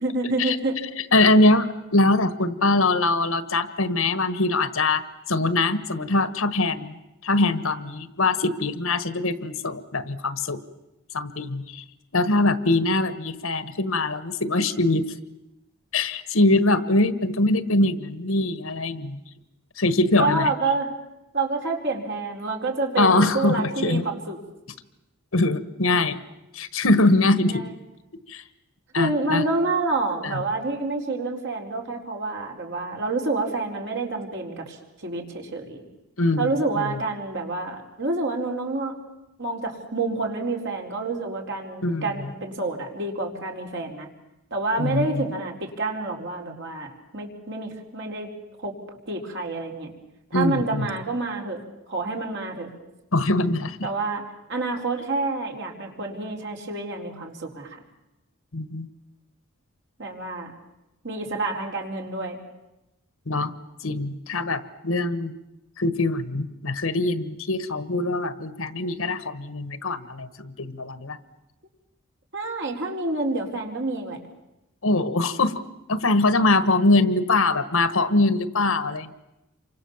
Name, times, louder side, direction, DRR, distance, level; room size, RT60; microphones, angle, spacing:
voice 1, 0.0-0.8 20.2-20.9 21.3-24.4 27.5-27.7 28.9-34.8 35.0-35.8 36.4-38.9 39.4-44.1 44.5-48.3 48.6-48.8 49.1-49.9 50.3-52.7 53.8-54.2 54.5-57.8 60.0-60.5 61.0-62.4 72.3-74.2, right 3 dB, 60° right, 1 dB, 4.4 m, -28 dB
voice 2, 1.1-7.0 7.2-10.6 11.1-11.8 12.1-15.0 15.9-19.2 19.8-20.5 23.0-24.0 25.3-26.2 26.5-27.6 28.3-28.4 28.9-29.4 30.2-30.4 36.2-36.9 41.8-42.3 44.8-45.3 50.3-50.9 53.1-53.9 58.5-58.9 63.3-63.5 63.8-65.3 65.8-71.2 74.8-75.5 75.9-79.1, left 2 dB, 75° left, 13 dB, 1.5 m, -23 dB
28.5 x 24.5 x 7.3 m, 0.93 s
head